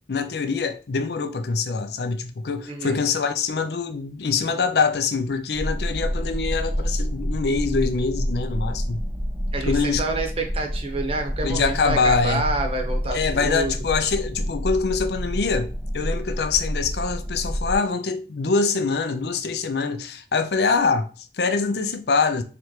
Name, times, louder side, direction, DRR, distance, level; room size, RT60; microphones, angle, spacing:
voice 1, 0.1-9.0 9.7-10.0 11.4-12.5 13.1-22.4, left 4 dB, 65° left, 0.5 m, -24 dB
voice 2, 2.7-3.0 9.5-13.7, right 2 dB, 30° right, 0.8 m, -28 dB
sound 1, 5.5-17.8, equal, ahead, 0.7 m, -28 dB
3.8 x 3.2 x 3.1 m
head